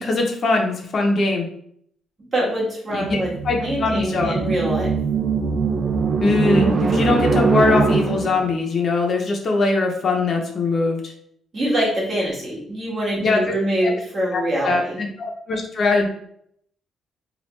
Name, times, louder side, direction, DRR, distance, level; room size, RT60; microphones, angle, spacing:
voice 1, 0.0-1.5 2.9-3.2 3.4-4.3 6.2-11.1 13.2-13.4 13.8-14.0 14.3-16.1, left 3 dB, 50° left, 1 dB, 0.6 m, -21 dB
voice 2, 2.3-3.3 3.6-4.9 11.5-15.0, right 1 dB, 35° right, -6 dB, 1.5 m, -24 dB
sound 1, 3.0-8.5, right 4 dB, 55° right, 0.4 m, -22 dB
3.1 x 2.3 x 3.1 m, 0.67 s
cardioid pair, 90°, 0 cm